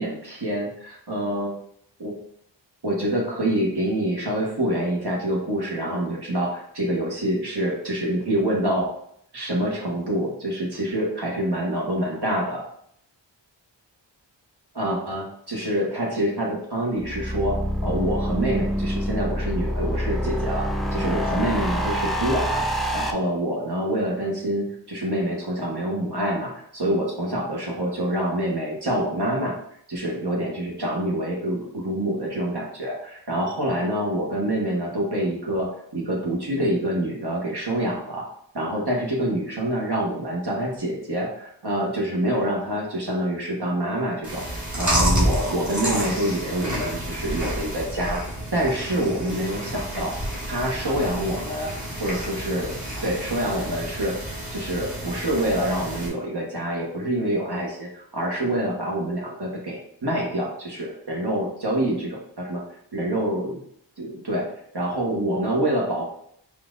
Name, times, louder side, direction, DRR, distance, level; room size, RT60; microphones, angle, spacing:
voice 1, 0.0-1.6 2.0-2.1 2.8-8.9 9.3-12.6 14.7-22.6 22.9-29.6 29.9-38.3 38.5-44.4 44.7-48.2 48.5-50.1 50.5-51.7 52.0-52.7 53.0-54.2 54.5-62.6 62.9-63.6 64.0-64.5 64.7-66.1, right 1 dB, 60° right, -2 dB, 1.3 m, -26 dB
sound 1, 17.0-23.1, equal, ahead, 0.5 m, -26 dB
Chewing mastication, 44.2-56.1, right 1 dB, 40° right, 1.4 m, -29 dB
4.4 x 2.4 x 3.8 m, 0.69 s
wide cardioid pair, 40°, 45 cm